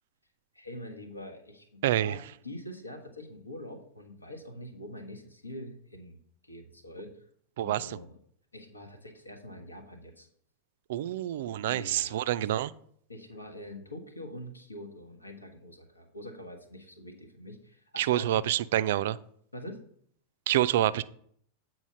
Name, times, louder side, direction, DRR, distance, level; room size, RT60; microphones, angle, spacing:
voice 1, 0.5-7.3 7.6-8.2 8.5-10.3 11.6-12.5 13.1-18.5 19.5-19.8, left 1 dB, 80° left, 1.4 m, -44 dB
voice 2, 1.8-2.2 7.6-8.0 10.9-12.7 18.0-19.2 20.5-21.0, right 13 dB, 55° right, 0.3 m, -27 dB
8.3 x 4.5 x 5.4 m
figure-of-eight pair, 90°, 0 cm